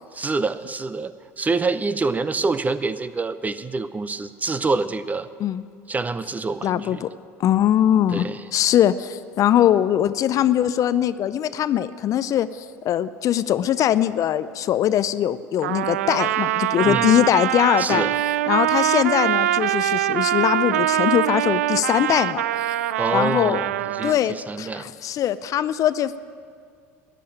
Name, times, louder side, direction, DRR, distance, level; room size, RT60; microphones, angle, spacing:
voice 1, 0.1-5.3 5.9-7.0 8.1-8.4 16.8-17.2 17.8-18.2 23.0-24.9, right 3 dB, 20° right, 14 dB, 0.7 m, -26 dB
voice 2, 6.6-7.1 7.4-8.2 8.5-18.1 18.5-22.7 23.1-23.6 24.0-26.2, left 11 dB, 45° left, 15 dB, 0.6 m, -21 dB
Trumpet, 15.6-24.1, right 13 dB, 80° right, 0.3 m, -23 dB
14.0 x 10.0 x 8.9 m, 2.2 s
hypercardioid pair, 75°, 8 cm